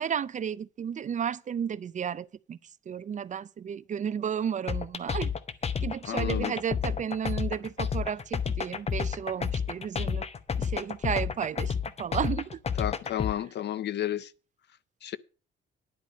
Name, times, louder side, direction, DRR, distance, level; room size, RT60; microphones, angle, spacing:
voice 1, 0.0-2.6 2.9-5.3 5.8-10.3 10.6-12.6, right 8 dB, 40° right, 0.4 m, -33 dB
sound 1, 4.7-13.3, left 6 dB, 30° left, 0.8 m, -30 dB
voice 2, 6.0-6.5 12.8-14.3 15.0-15.2, left 11 dB, 60° left, 0.6 m, -32 dB
10.5 x 5.0 x 8.3 m
cardioid pair, 90°, 20 cm